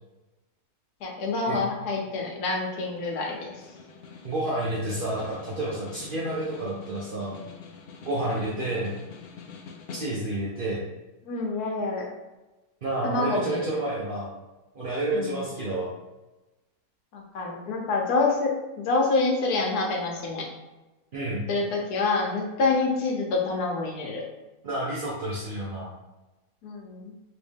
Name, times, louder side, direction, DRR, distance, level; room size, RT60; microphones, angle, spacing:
voice 1, 1.0-3.6 8.3-8.5 11.2-12.0 13.0-13.8 15.1-15.4 17.1-20.5 21.5-24.2 26.6-27.1, left 3 dB, 85° left, 0 dB, 1.3 m, -27 dB
Snare drum, 2.5-10.5, left 5 dB, 70° left, 0.5 m, -46 dB
voice 2, 4.2-7.4 8.0-8.9 9.9-10.8 12.8-14.3 14.7-15.9 21.1-21.4 24.6-25.9, right 1 dB, 55° right, -5 dB, 0.6 m, -30 dB
3.1 x 2.8 x 3.5 m, 1.1 s
omnidirectional pair, 1.6 m